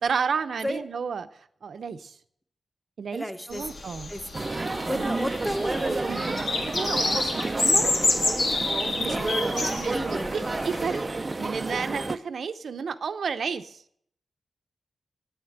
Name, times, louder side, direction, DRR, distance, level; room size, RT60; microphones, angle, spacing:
voice 1, 0.0-1.3 1.6-2.2 3.0-4.1 4.9-5.1 5.9-8.0 9.0-11.0 11.4-13.8, right 6 dB, 65° right, 10 dB, 0.7 m, -32 dB
voice 2, 3.1-3.6 4.1-4.2 4.9-6.3 7.6-7.8 9.1-10.5, equal, 5° left, 7 dB, 1.1 m, -33 dB
sound 1, 3.5-11.0, left 2 dB, 60° left, 1.9 m, -29 dB
sound 2, 4.3-12.2, right 3 dB, 25° right, 0.5 m, -30 dB
9.6 x 9.5 x 7.9 m, 0.67 s
wide cardioid pair, 130°, 0 cm